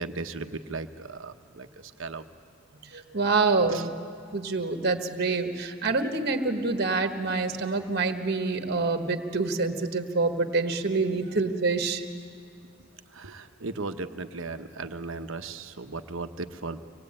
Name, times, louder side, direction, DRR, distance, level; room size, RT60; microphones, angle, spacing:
voice 1, 0.0-2.2 3.7-3.9 11.3-11.4 13.1-16.8, right 3 dB, 75° right, 8 dB, 1.0 m, -36 dB
voice 2, 2.9-3.9 4.3-12.0, right 3 dB, 50° right, 6 dB, 1.4 m, -26 dB
25.0 x 19.5 x 8.8 m, 2.2 s
head